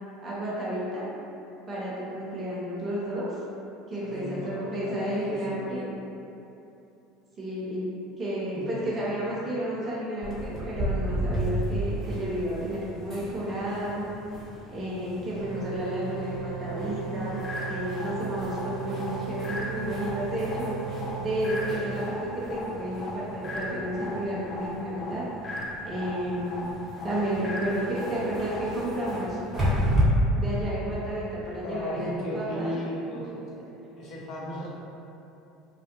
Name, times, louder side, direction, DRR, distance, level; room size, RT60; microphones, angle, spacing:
voice 1, 0.2-1.0 1.7-3.3 3.9-5.8 7.4-7.9 8.2-14.1 14.7-17.4 17.7-20.7 21.2-25.2 25.8-26.7 27.0-29.9 30.4-32.1 32.3-32.8, equal, 35° right, -7 dB, 0.6 m, -31 dB
voice 2, 4.0-5.7 8.5-9.5 31.6-33.3 34.0-34.7, left 1 dB, 50° left, -6 dB, 0.7 m, -36 dB
sound 1, 10.2-30.0, right 1 dB, 15° right, 1.0 m, -35 dB
sound 2, 15.4-21.7, right 7 dB, 70° right, 0.3 m, -36 dB
sound 3, 17.4-29.4, left 1 dB, 30° left, 0.3 m, -38 dB
2.4 x 2.1 x 2.9 m, 2.9 s
hypercardioid pair, 70°, 0 cm